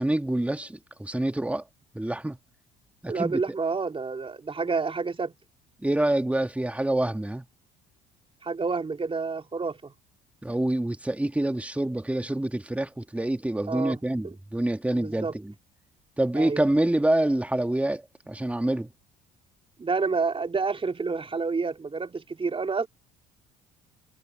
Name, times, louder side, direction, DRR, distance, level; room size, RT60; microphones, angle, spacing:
voice 1, 0.0-1.6 1.9-2.4 3.0-3.4 5.8-7.5 10.4-15.5 16.2-18.9, right 1 dB, 5° right, 1.8 m, -26 dB
voice 2, 3.1-5.3 8.4-9.9 13.7-14.3 14.9-15.3 16.3-16.6 19.8-22.9, right 4 dB, 25° right, 3.9 m, -29 dB
hypercardioid pair, 65°, 20 cm